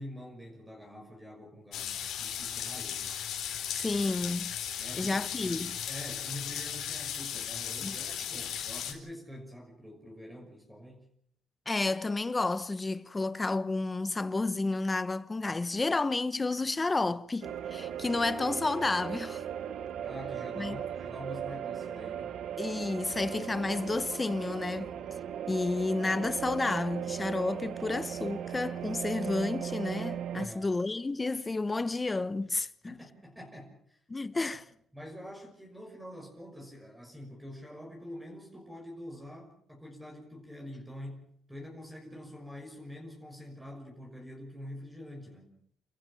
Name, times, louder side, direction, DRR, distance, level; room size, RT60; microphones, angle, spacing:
voice 1, 0.0-3.1 4.8-11.1 20.0-22.4 30.4-30.7 32.9-34.0 34.3-34.6 34.9-45.5, equal, 10° right, 6.1 m, -46 dB
sound 1, 1.7-8.9, left 9 dB, 80° left, 4.0 m, -36 dB
voice 2, 3.7-4.5 5.0-5.8 7.8-8.0 11.7-19.4 20.6-20.8 22.6-24.9 25.5-33.0 34.1-34.6, left 3 dB, 20° left, 1.1 m, -31 dB
sound 2, 17.4-30.5, right 9 dB, 75° right, 1.2 m, -37 dB
28.5 x 15.0 x 7.4 m
cardioid pair, 90°, 0 cm